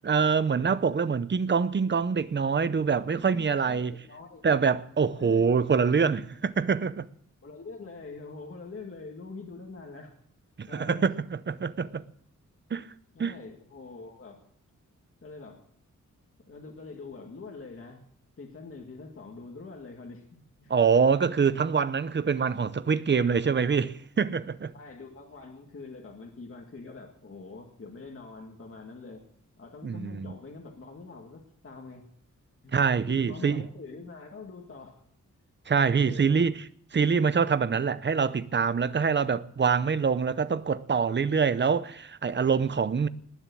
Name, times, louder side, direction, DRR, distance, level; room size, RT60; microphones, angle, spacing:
voice 1, 0.0-3.9 4.4-7.1 10.6-12.0 12.7-12.9 13.2-13.3 20.7-24.7 29.8-30.3 32.7-33.7 35.7-36.6 36.9-43.1, right 6 dB, 35° right, 0.7 m, -25 dB
voice 2, 3.2-4.4 5.1-5.5 7.4-10.1 10.7-11.1 11.8-12.0 13.1-14.4 15.2-15.6 16.5-18.0 18.4-20.7 24.7-29.2 29.6-32.0 32.6-32.8 33.1-35.0 35.9-36.5, left 3 dB, 45° left, 1.9 m, -44 dB
19.5 x 7.1 x 8.5 m
wide cardioid pair, 150°, 31 cm